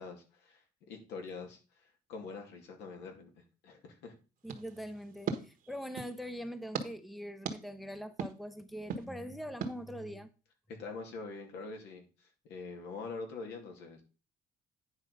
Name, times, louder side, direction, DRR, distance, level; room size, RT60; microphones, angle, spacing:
voice 1, 0.0-1.6 2.1-3.3 3.6-4.1 10.8-12.1 12.5-14.0, left 4 dB, 85° left, 2.4 m, -44 dB
voice 2, 4.4-10.3, equal, ahead, 0.8 m, -43 dB
sound 1, 4.5-6.2 6.7-6.9 7.5-7.6 8.2-8.3 8.9-9.0 9.6-9.7, right 6 dB, 55° right, 1.4 m, -38 dB
9.7 x 4.7 x 5.4 m
cardioid pair, 110°, 17 cm